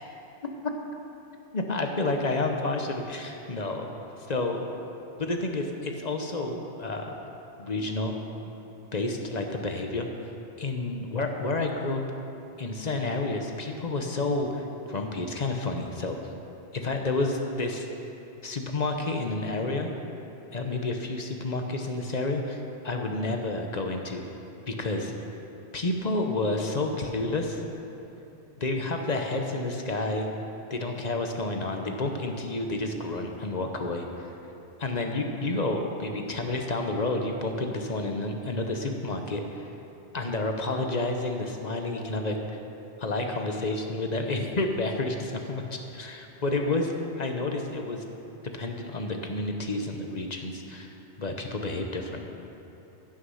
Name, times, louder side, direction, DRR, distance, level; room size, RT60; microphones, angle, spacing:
voice 1, 1.5-3.9 4.3-4.6 5.2-7.2 7.6-8.2 8.9-10.1 10.6-12.0 12.6-16.2 16.7-17.9 18.4-19.9 20.5-24.3 24.7-25.3 25.7-27.6 28.6-30.3 30.7-34.3 34.8-39.6 40.1-42.4 43.0-46.9 47.2-48.0 48.5-52.3, left 2 dB, 40° left, 3 dB, 0.9 m, -30 dB
16.0 x 6.4 x 5.6 m, 2.9 s
omnidirectional pair, 1.2 m